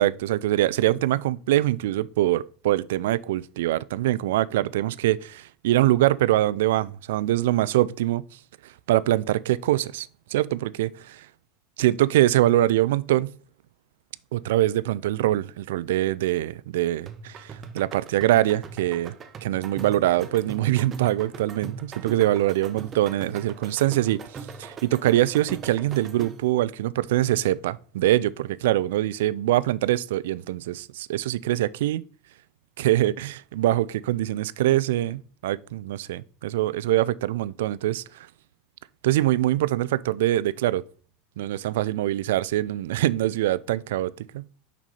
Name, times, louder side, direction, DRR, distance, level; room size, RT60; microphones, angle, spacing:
voice 1, 0.0-8.2 8.6-11.3 11.8-13.3 14.3-19.1 19.4-24.2 24.6-32.0 32.8-38.3 39.0-40.8 41.4-44.5, right 14 dB, 75° right, 0.3 m, -24 dB
sound 1, 17.1-26.6, right 5 dB, 35° right, 0.9 m, -40 dB
6.1 x 5.3 x 4.2 m
hypercardioid pair, 95°, 0 cm